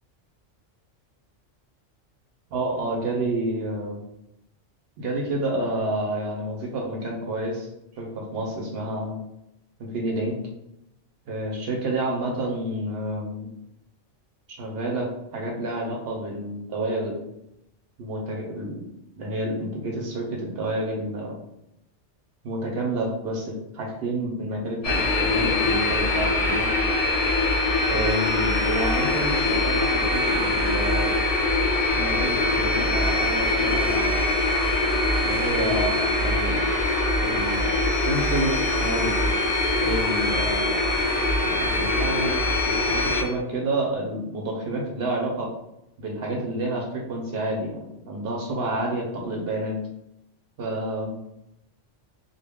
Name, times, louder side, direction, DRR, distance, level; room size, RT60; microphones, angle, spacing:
voice 1, 2.5-4.0 5.0-9.2 9.8-10.4 11.3-13.5 14.5-17.2 18.0-18.8 19.2-21.3 22.4-26.7 27.9-31.2 31.9-34.2 35.2-36.6 37.2-39.2 39.8-40.8 41.4-45.5 46.0-49.8 50.6-51.2, right 1 dB, 60° right, -1 dB, 0.8 m, -29 dB
sound 1, 24.8-43.2, left 2 dB, 45° left, 0.5 m, -23 dB
2.2 x 2.0 x 3.4 m, 0.84 s
omnidirectional pair, 1.3 m